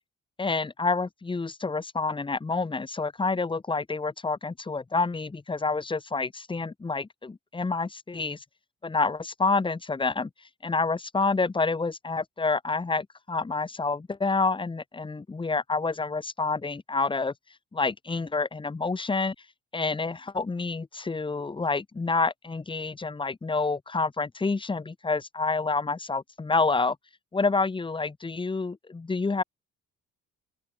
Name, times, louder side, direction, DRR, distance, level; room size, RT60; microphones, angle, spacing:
voice 1, 0.4-8.4 8.8-10.3 10.6-17.3 17.7-19.3 19.7-27.0 27.3-29.4, left 3 dB, 15° left, 0.8 m, -28 dB
open air
cardioid pair, 75°, 30 cm